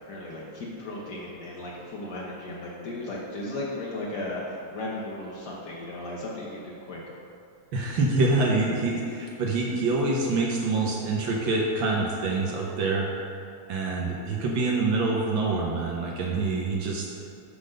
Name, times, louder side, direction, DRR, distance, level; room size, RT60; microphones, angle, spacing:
voice 1, 0.1-7.0, left 1 dB, 75° left, -5 dB, 0.9 m, -35 dB
voice 2, 7.7-13.1 13.7-17.0, right 3 dB, 85° right, -2 dB, 1.0 m, -26 dB
12.0 x 4.0 x 6.5 m, 2.5 s
omnidirectional pair, 3.5 m